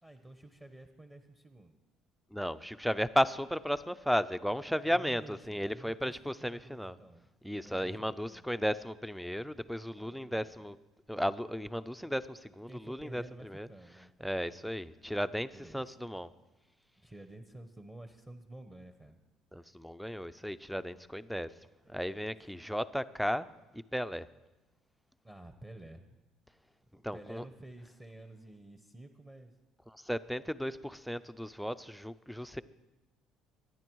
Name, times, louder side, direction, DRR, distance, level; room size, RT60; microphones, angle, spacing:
voice 1, 0.0-1.8 4.6-6.1 6.4-8.5 9.9-10.6 12.7-14.5 15.5-15.9 17.0-19.2 21.8-22.3 25.2-26.2 26.9-29.5, right 1 dB, 15° right, 7 dB, 1.0 m, -51 dB
voice 2, 2.3-6.9 7.4-10.8 11.1-13.7 14.2-16.3 19.5-21.5 21.9-23.5 23.7-24.3 27.0-27.4 29.9-32.6, equal, ahead, 13 dB, 0.5 m, -34 dB
24.0 x 10.5 x 4.7 m, 1.1 s
cardioid pair, 120°, 0 cm